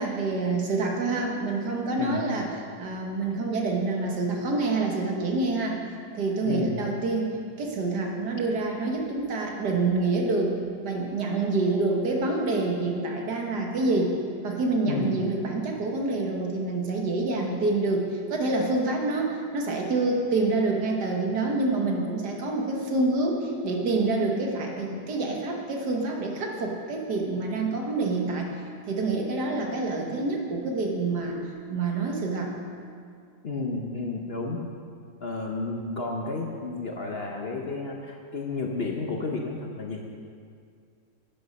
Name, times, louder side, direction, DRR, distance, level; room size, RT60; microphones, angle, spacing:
voice 1, 0.0-2.5 2.8-5.8 6.1-7.3 7.6-14.1 14.4-28.5 28.9-32.5, right 3 dB, 70° right, 1 dB, 1.9 m, -27 dB
voice 2, 6.4-6.8 14.9-15.2 33.4-34.7 35.2-40.0, left 3 dB, 45° left, 0 dB, 0.9 m, -31 dB
11.5 x 9.1 x 5.3 m, 2.3 s
omnidirectional pair, 1.8 m